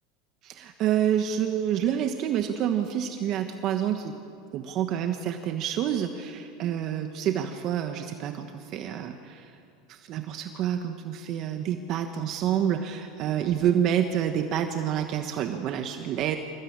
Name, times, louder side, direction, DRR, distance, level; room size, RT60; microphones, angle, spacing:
voice 1, 0.4-4.1 4.5-9.5 9.9-16.4, right 9 dB, 45° right, 6 dB, 1.3 m, -28 dB
27.0 x 16.5 x 8.8 m, 2.5 s
supercardioid pair, 140°, 0 cm